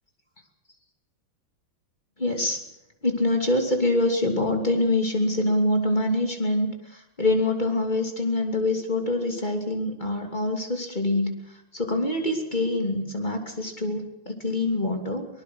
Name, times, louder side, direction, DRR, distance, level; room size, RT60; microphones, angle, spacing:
voice 1, 2.2-2.6 3.0-15.3, left 2 dB, 20° left, 4 dB, 3.0 m, -25 dB
24.0 x 19.5 x 6.4 m, 0.89 s
omnidirectional pair, 2.3 m